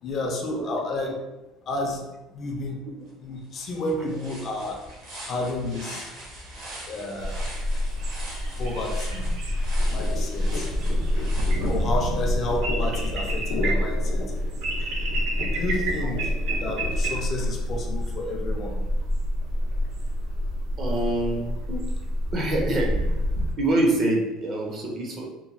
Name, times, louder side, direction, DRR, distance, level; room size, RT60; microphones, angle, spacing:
voice 1, 0.0-1.2 1.6-2.0 2.3-2.8 3.2-4.8 5.2-6.1 6.9-7.4 8.6-9.2 9.9-10.7 11.6-14.2 15.3-18.8 19.5-19.6, left 2 dB, 40° left, 1 dB, 0.5 m, -31 dB
sound 1, 3.1-3.2 3.5-12.3, right 1 dB, 60° right, 1.0 m, -42 dB
sound 2, 7.2-23.5, equal, 80° right, 0.5 m, -27 dB
sound 3, 9.8-17.8, left 2 dB, 85° left, 0.5 m, -37 dB
voice 2, 20.8-21.8 22.3-22.9 23.6-25.3, right 1 dB, 35° right, 0 dB, 0.6 m, -25 dB
2.9 x 2.2 x 2.6 m, 1.0 s
cardioid pair, 140°, 0 cm